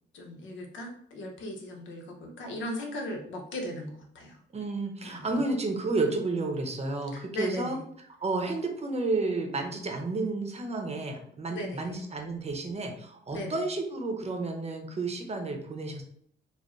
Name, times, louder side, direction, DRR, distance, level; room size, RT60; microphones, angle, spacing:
voice 1, 0.1-4.4 5.0-5.4 7.1-7.8 11.5-12.0 13.3-13.6, left 1 dB, 75° left, 1 dB, 0.9 m, -38 dB
voice 2, 4.5-7.8 8.2-16.0, right 3 dB, 35° right, 3 dB, 0.7 m, -31 dB
4.3 x 2.1 x 3.1 m, 0.68 s
cardioid pair, 90°, 20 cm